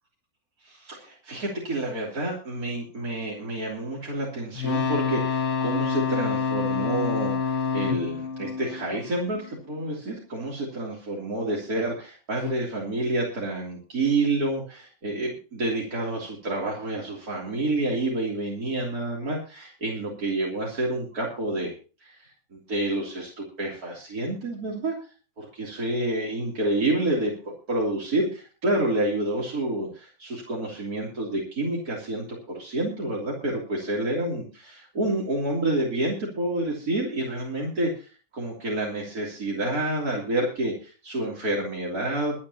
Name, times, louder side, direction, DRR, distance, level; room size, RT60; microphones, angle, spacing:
voice 1, 0.6-21.7 22.0-25.0 25.4-42.3, right 2 dB, 80° right, -3 dB, 3.6 m, -29 dB
sound 1, 4.5-9.6 12.4-12.5, left 6 dB, 55° left, 1.7 m, -27 dB
23.5 x 9.9 x 2.9 m, 0.36 s
omnidirectional pair, 1.6 m